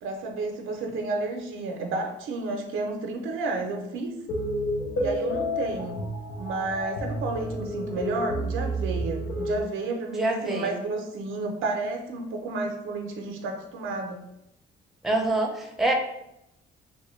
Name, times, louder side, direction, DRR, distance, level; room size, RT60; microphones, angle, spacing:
voice 1, 0.0-4.2 5.0-6.0 6.4-14.2, right 3 dB, 80° right, 3 dB, 0.6 m, -31 dB
sound 1, 4.3-9.6, equal, 85° left, 0.6 m, -30 dB
voice 2, 10.1-10.8 15.0-15.9, right 2 dB, ahead, 1 dB, 0.6 m, -26 dB
3.4 x 2.2 x 3.1 m, 0.83 s
cardioid pair, 90°, 20 cm